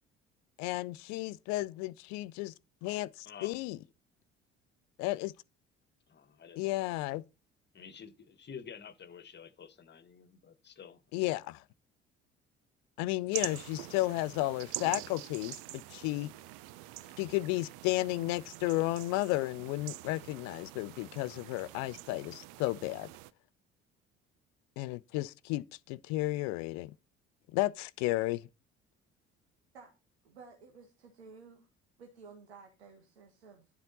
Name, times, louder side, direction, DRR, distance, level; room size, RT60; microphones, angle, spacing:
voice 1, 0.6-2.5 2.8-3.8 5.0-5.3 6.6-7.2 11.1-11.6 13.0-16.3 17.2-23.1 24.8-26.9 27.5-28.4, left 19 dB, 55° left, 0.7 m, -33 dB
voice 2, 3.2-3.7 6.1-7.0 7.7-11.4, left 7 dB, 35° left, 1.4 m, -50 dB
sound 1, 13.3-23.3, right 17 dB, 60° right, 0.6 m, -45 dB
voice 3, 30.2-31.7 32.0-33.7, right 5 dB, 75° right, 1.6 m, -54 dB
11.5 x 7.4 x 4.1 m
figure-of-eight pair, 55°, 32 cm